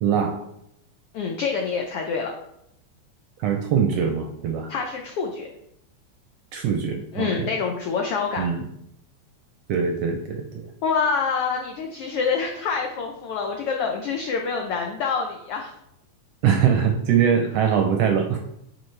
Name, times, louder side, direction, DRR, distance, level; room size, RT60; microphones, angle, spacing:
voice 1, 0.0-0.4 3.4-4.7 6.5-7.3 8.4-8.6 9.7-10.6 16.4-18.4, right 7 dB, 75° right, 4 dB, 1.5 m, -22 dB
voice 2, 1.1-2.3 4.7-5.5 7.1-8.5 10.8-15.7, left 5 dB, 90° left, 2 dB, 1.2 m, -26 dB
9.8 x 4.7 x 3.3 m, 0.77 s
omnidirectional pair, 3.5 m